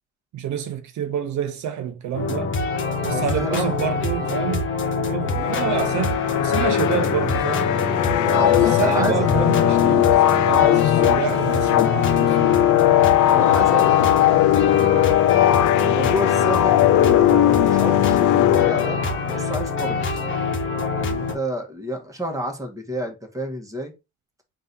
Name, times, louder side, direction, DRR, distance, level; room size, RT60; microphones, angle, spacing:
voice 1, 0.3-2.5 3.0-4.7 5.0-7.8 8.2-12.8, right 9 dB, 75° right, 0.6 m, -28 dB
sound 1, 2.1-21.3, left 3 dB, 40° left, 1.2 m, -25 dB
voice 2, 3.1-3.7 8.6-9.3 10.5-10.7 13.3-15.4 15.8-19.0 19.3-20.1 21.0-23.9, left 1 dB, 10° right, 1.4 m, -30 dB
sound 2, 5.3-19.4, left 13 dB, 75° left, 0.5 m, -19 dB
3.9 x 2.8 x 3.9 m
cardioid pair, 90°, 30 cm